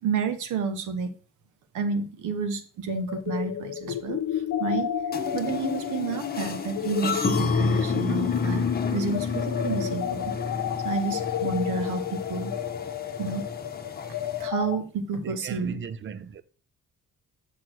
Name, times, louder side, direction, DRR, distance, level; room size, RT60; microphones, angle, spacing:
voice 1, 0.0-1.1 1.7-4.9 5.3-10.3 10.8-12.5 13.2-13.4 14.4-15.8, right 5 dB, 80° right, 1.3 m, -30 dB
sound 1, 2.9-14.8, left 10 dB, 70° left, 0.7 m, -31 dB
sound 2, 5.1-14.5, left 4 dB, 30° left, 1.1 m, -31 dB
voice 2, 15.2-16.4, right 7 dB, 40° right, 0.7 m, -37 dB
7.2 x 4.4 x 6.2 m
cardioid pair, 90°, 30 cm